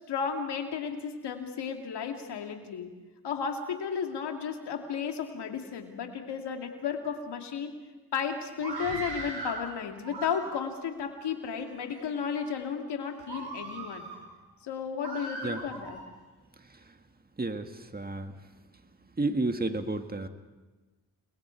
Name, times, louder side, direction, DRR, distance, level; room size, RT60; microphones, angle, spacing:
voice 1, 0.1-2.9 3.2-7.7 8.1-14.1 14.6-16.0, left 6 dB, 90° left, 4 dB, 2.4 m, -33 dB
Screaming, 8.5-9.6 10.0-10.8 11.5-12.0 12.5-12.7 13.2-14.2 15.0-16.0, right 2 dB, 80° right, 7.0 m, -39 dB
voice 2, 17.4-18.3 19.2-20.3, right 2 dB, 25° right, 7 dB, 1.8 m, -31 dB
30.0 x 21.5 x 4.6 m, 1.2 s
cardioid pair, 55°, 40 cm